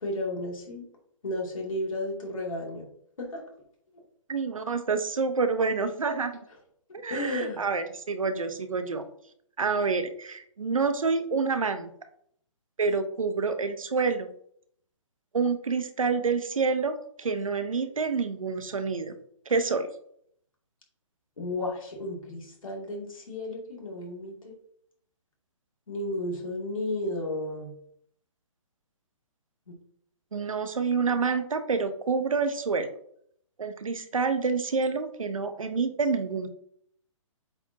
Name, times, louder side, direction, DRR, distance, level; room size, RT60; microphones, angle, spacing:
voice 1, 0.0-0.8 1.2-2.8 3.2-3.4 7.1-7.6 21.4-24.5 25.9-27.7, left 1 dB, 80° left, -1 dB, 2.6 m, -33 dB
voice 2, 4.3-6.4 6.9-9.0 9.6-11.9 12.8-14.3 15.3-19.1 19.5-19.9 30.3-32.9 33.6-36.5, right 4 dB, 85° right, 9 dB, 0.9 m, -28 dB
7.8 x 4.4 x 2.8 m, 0.67 s
hypercardioid pair, 140°, 17 cm